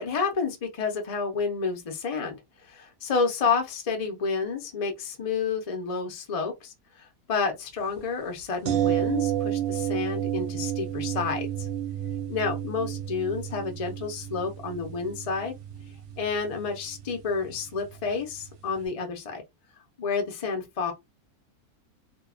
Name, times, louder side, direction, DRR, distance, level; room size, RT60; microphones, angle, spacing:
voice 1, 0.0-2.4 2.6-11.7 12.3-15.5 16.2-19.4 20.0-20.9, left 5 dB, 70° left, 0.3 m, -30 dB
sound 1, 8.7-18.5 18.8-18.9, right 11 dB, 60° right, 0.8 m, -31 dB
2.7 x 2.3 x 2.3 m
omnidirectional pair, 1.7 m